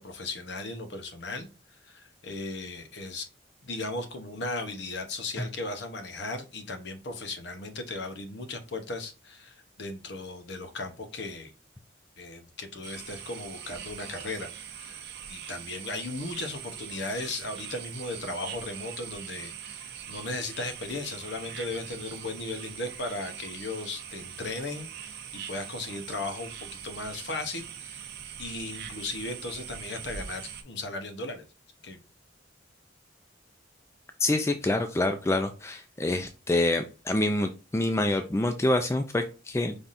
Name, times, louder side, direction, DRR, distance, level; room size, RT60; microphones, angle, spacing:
voice 1, 0.0-1.5 1.8-3.3 3.6-11.5 12.2-28.1 28.4-31.4 31.8-32.0, left 2 dB, 60° left, 7 dB, 0.8 m, -36 dB
sound 1, 12.8-30.6, right 8 dB, 55° right, 0.6 m, -42 dB
voice 2, 34.2-39.8, left 2 dB, 15° left, 7 dB, 0.3 m, -26 dB
5.6 x 3.4 x 2.5 m, 0.32 s
head